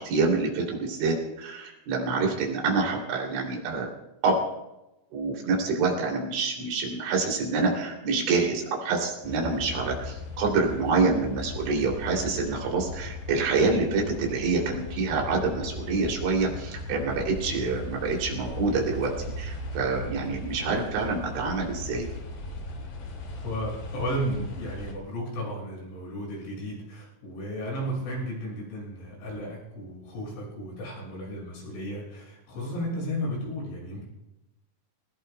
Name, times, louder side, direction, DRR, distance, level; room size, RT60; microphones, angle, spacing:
voice 1, 0.0-3.9 4.2-4.4 5.1-22.1, right 4 dB, 85° right, -1 dB, 5.3 m, -27 dB
sound 1, 9.2-24.9, left 2 dB, 65° left, 4.9 m, -37 dB
voice 2, 23.4-34.0, equal, 85° left, -3 dB, 8.8 m, -34 dB
21.5 x 19.5 x 2.2 m, 0.93 s
omnidirectional pair, 5.2 m